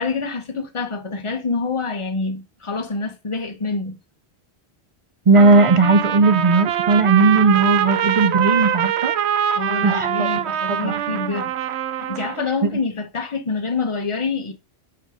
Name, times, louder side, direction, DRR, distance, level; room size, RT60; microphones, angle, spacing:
voice 1, 0.0-4.0 9.6-11.5 12.0-14.5, left 4 dB, 30° left, 1.0 m, -26 dB
voice 2, 5.3-9.1 9.8-10.3 10.7-11.0, right 3 dB, 45° right, 0.4 m, -16 dB
Trumpet, 5.3-12.5, right 10 dB, 85° right, 0.9 m, -23 dB
5.3 x 4.7 x 4.9 m
omnidirectional pair, 1.1 m